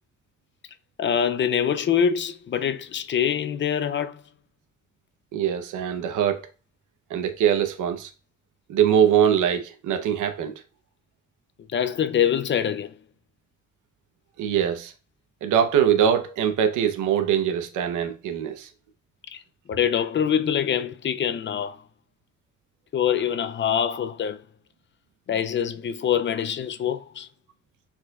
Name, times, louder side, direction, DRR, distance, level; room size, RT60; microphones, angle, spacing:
voice 1, 1.0-4.2 11.7-12.9 19.3-19.4 19.7-21.8 22.9-24.4 25.3-27.3, left 8 dB, 40° left, 0.4 m, -24 dB
voice 2, 5.3-6.4 7.1-8.1 8.7-10.5 14.4-14.9 15.4-18.7, right 9 dB, 80° right, 0.8 m, -22 dB
4.4 x 4.3 x 2.3 m
cardioid pair, 90°, 30 cm